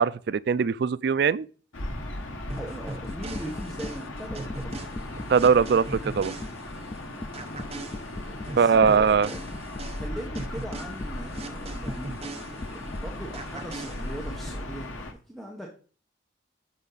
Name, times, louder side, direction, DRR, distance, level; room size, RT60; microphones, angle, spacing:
voice 1, 0.0-1.5 5.3-6.3 8.6-9.3, right 6 dB, 55° right, 0.3 m, -21 dB
Gull seagull / Ocean, 1.7-15.1, left 1 dB, 90° left, 1.3 m, -37 dB
sound 1, 2.4-2.6 3.1-4.0 4.3-5.6 5.9-6.5 6.9-8.6 8.8-11.5 11.9-12.0 12.6-13.0, left 2 dB, 25° left, 0.3 m, -38 dB
voice 2, 2.5-5.0 7.1-7.3 8.3-9.5 10.0-15.7, right 1 dB, ahead, 1.1 m, -40 dB
sound 2, 2.5-7.0 7.3-13.0 13.3-14.5, right 2 dB, 30° right, 0.9 m, -40 dB
9.8 x 6.2 x 4.0 m
head